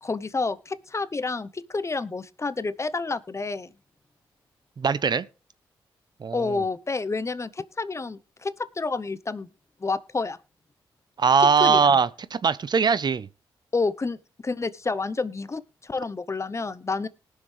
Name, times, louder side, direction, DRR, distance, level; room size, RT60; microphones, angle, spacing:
voice 1, 0.0-3.7 6.3-9.5 9.8-10.4 11.6-12.0 13.7-14.2 14.4-17.1, left 3 dB, 30° left, 0.8 m, -29 dB
voice 2, 4.8-5.3 6.2-6.6 11.2-13.3, right 6 dB, 50° right, 0.7 m, -21 dB
19.5 x 6.5 x 3.3 m
supercardioid pair, 50°, 9 cm